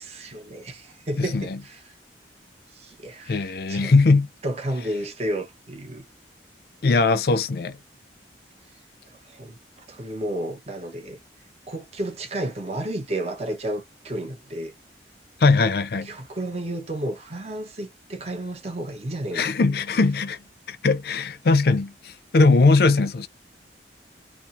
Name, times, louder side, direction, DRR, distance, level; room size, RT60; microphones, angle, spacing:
voice 1, 0.0-1.8 2.7-3.9 4.4-6.0 9.3-9.6 9.9-11.2 11.7-14.7 16.0-19.5, right 1 dB, 35° right, 0.7 m, -32 dB
voice 2, 1.2-1.6 3.3-4.3 6.8-7.8 15.4-16.1 19.3-23.3, left 3 dB, 55° left, 0.4 m, -20 dB
2.4 x 2.4 x 2.7 m
head